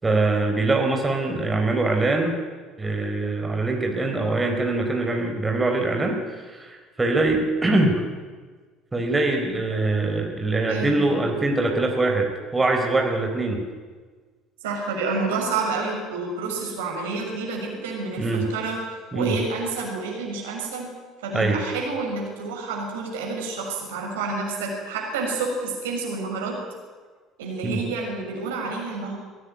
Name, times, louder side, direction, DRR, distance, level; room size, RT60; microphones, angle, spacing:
voice 1, 0.0-2.3 2.8-8.0 8.9-13.6 18.2-18.5 19.1-19.3 21.3-21.6 27.6-27.8, right 2 dB, 15° right, 3 dB, 4.1 m, -23 dB
voice 2, 10.7-11.0 14.6-18.8 19.1-20.9 21.2-26.6 27.4-29.2, right 3 dB, 70° right, 0 dB, 6.5 m, -29 dB
22.0 x 18.0 x 9.5 m, 1.5 s
figure-of-eight pair, 60°, 0 cm